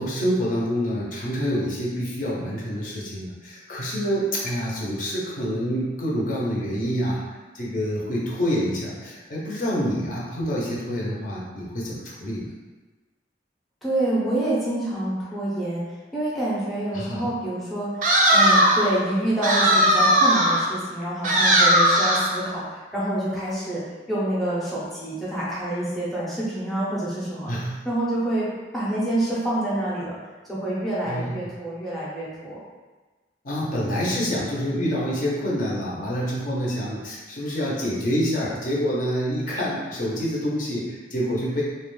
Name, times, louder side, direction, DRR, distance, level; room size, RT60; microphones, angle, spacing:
voice 1, 0.0-7.2 7.5-12.5 16.9-17.2 27.5-27.8 31.1-31.3 33.4-41.6, equal, 50° left, -5 dB, 0.6 m, -27 dB
voice 2, 13.8-15.8 16.1-17.9 18.3-23.8 24.1-27.5 27.8-28.5 28.7-30.2 30.5-32.6, right 1 dB, ahead, -8 dB, 0.5 m, -27 dB
sound 1, 18.0-18.9 19.4-20.7 21.2-22.3, equal, 45° right, 0.4 m, -18 dB
2.4 x 2.1 x 3.0 m, 1.2 s
head